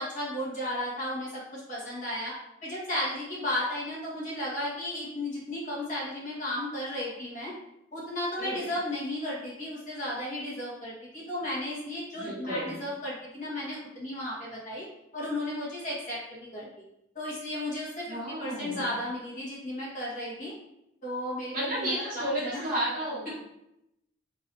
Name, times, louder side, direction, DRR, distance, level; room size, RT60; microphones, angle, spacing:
voice 1, 0.0-2.3 2.6-7.5 7.9-14.9 15.1-16.7 17.1-20.5 21.0-22.7, left 1 dB, 40° left, -7 dB, 1.5 m, -34 dB
voice 2, 12.1-12.7 18.1-18.9 21.5-23.3, right 1 dB, 45° right, -7 dB, 1.6 m, -32 dB
3.8 x 2.9 x 4.2 m, 0.83 s
head